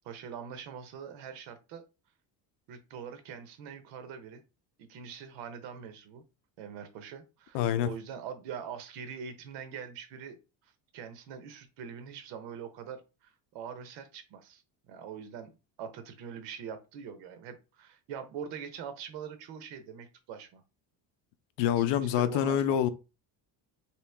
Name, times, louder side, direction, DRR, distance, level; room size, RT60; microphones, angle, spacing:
voice 1, 0.0-1.8 2.7-4.4 4.8-6.2 6.6-10.4 10.9-15.5 15.8-20.6 21.6-22.8, right 7 dB, 80° right, 0.9 m, -43 dB
voice 2, 7.5-7.9 21.6-22.9, left 10 dB, 75° left, 0.6 m, -26 dB
3.0 x 2.8 x 3.4 m
cardioid pair, 160°, 43 cm